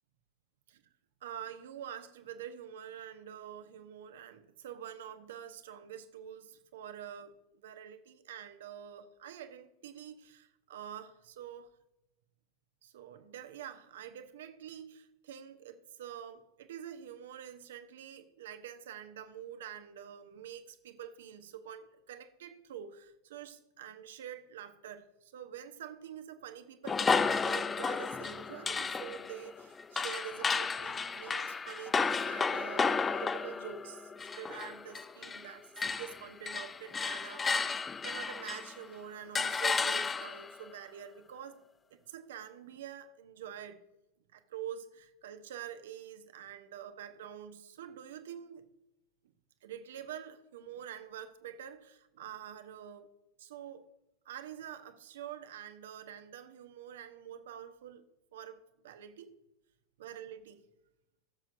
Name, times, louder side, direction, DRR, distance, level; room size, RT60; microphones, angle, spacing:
voice 1, 1.2-11.7 12.8-37.7 38.0-41.6 41.9-43.8 44.3-48.6 49.6-53.1 53.4-53.9 54.2-58.1 58.3-59.3 60.0-60.6, right 9 dB, 60° right, 0.9 m, -46 dB
sound 1, 26.8-35.5 35.8-38.8 39.3-40.5, left 5 dB, 15° left, 0.4 m, -33 dB
16.5 x 7.4 x 2.6 m
figure-of-eight pair, 90°, 0 cm